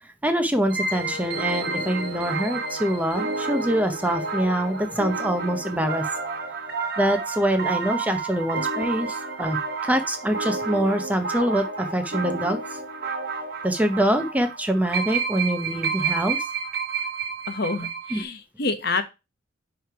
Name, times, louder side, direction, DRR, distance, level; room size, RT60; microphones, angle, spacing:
voice 1, 0.0-6.0 7.0-12.8 13.6-16.5 18.1-18.2, right 1 dB, 10° right, 7 dB, 0.7 m, -25 dB
sound 1, 0.7-18.2, right 4 dB, 50° right, 1.3 m, -30 dB
Wind instrument woodwind instrument, 0.9-6.7, left 1 dB, 65° right, 2.2 m, -41 dB
voice 2, 17.5-19.0, left 3 dB, 55° left, 9 dB, 1.0 m, -27 dB
9.6 x 3.3 x 4.6 m, 0.26 s
head